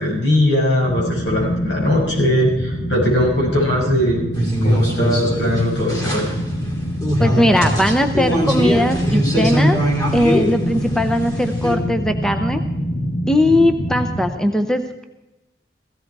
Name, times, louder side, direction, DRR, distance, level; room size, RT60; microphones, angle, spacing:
voice 1, 0.0-4.2 4.6-6.3, left 1 dB, 80° left, -2 dB, 6.5 m, -19 dB
sound 1, 0.8-14.2, equal, 45° left, 1.7 m, -25 dB
sound 2, 4.3-11.8, equal, 20° left, 3.2 m, -21 dB
voice 2, 7.2-9.8 10.1-12.6 13.3-15.0, left 1 dB, 5° left, 6 dB, 0.7 m, -19 dB
16.5 x 16.0 x 4.7 m, 0.99 s
head